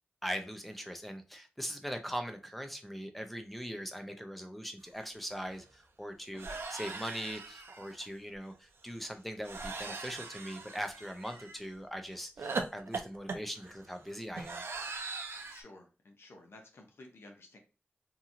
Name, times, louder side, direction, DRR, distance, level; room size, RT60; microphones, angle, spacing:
voice 1, 0.2-14.6, equal, ahead, 5 dB, 0.6 m, -41 dB
sound 1, 5.0-5.1 5.3-5.5 6.4-8.0 9.4-11.6 12.4-15.6, right 4 dB, 75° right, 0.5 m, -40 dB
voice 2, 15.4-17.6, left 2 dB, 75° left, 2 dB, 0.7 m, -54 dB
2.8 x 2.6 x 2.5 m, 0.33 s
wide cardioid pair, 65°, 4 cm